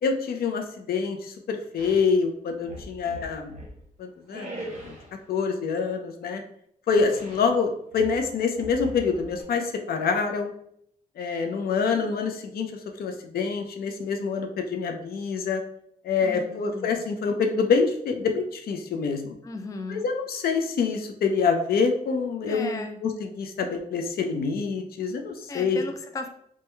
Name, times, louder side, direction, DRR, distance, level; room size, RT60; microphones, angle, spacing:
voice 1, 0.0-3.5 4.0-4.9 5.3-6.4 6.9-10.5 11.2-12.7 13.0-15.6 16.0-19.3 19.9-25.8, left 5 dB, 75° left, 5 dB, 0.5 m, -26 dB
sound 1, 1.8-2.1 2.6-3.8 4.3-5.2 7.0-7.6 7.9-9.4, right 1 dB, 50° right, 1.1 m, -41 dB
voice 2, 16.2-17.0 19.4-20.1 22.5-23.0 25.5-26.3, left 3 dB, 20° left, 6 dB, 0.3 m, -36 dB
3.0 x 2.2 x 3.2 m, 0.70 s
cardioid pair, 95°, 16 cm